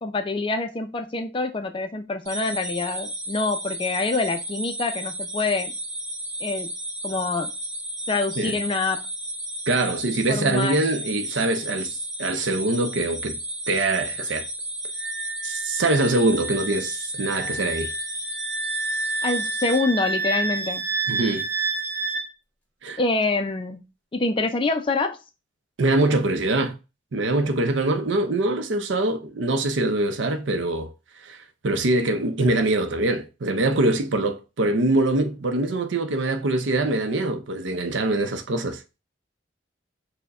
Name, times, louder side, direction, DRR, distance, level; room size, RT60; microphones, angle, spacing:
voice 1, 0.0-5.7 6.4-6.7 7.0-7.5 8.1-9.1 10.3-10.8 19.2-20.9 23.0-23.8 24.1-25.2, left 3 dB, 25° left, 0.3 m, -26 dB
sound 1, 2.2-19.7, right 1 dB, 40° right, 1.5 m, -33 dB
voice 2, 9.7-13.4 13.7-14.5 15.4-17.9 21.1-21.4 22.8-23.0 25.8-26.8 27.1-30.9 31.2-38.8, right 2 dB, 75° right, 0.6 m, -24 dB
Wind instrument woodwind instrument, 15.0-22.3, right 3 dB, 10° left, 1.2 m, -29 dB
4.6 x 2.2 x 4.6 m
head